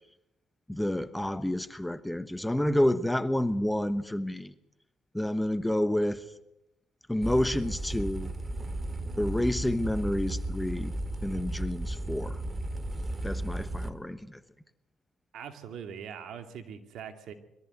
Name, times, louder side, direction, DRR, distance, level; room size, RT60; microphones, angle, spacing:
voice 1, 0.7-4.5 5.1-6.3 7.1-8.3 9.2-10.9 11.2-12.4 13.2-14.4, left 1 dB, 5° left, 1.1 m, -29 dB
sound 1, 7.2-13.9, right 1 dB, 25° right, 2.3 m, -34 dB
voice 2, 15.3-17.3, right 7 dB, 70° right, 2.5 m, -42 dB
22.0 x 14.0 x 9.5 m
supercardioid pair, 80°, 0 cm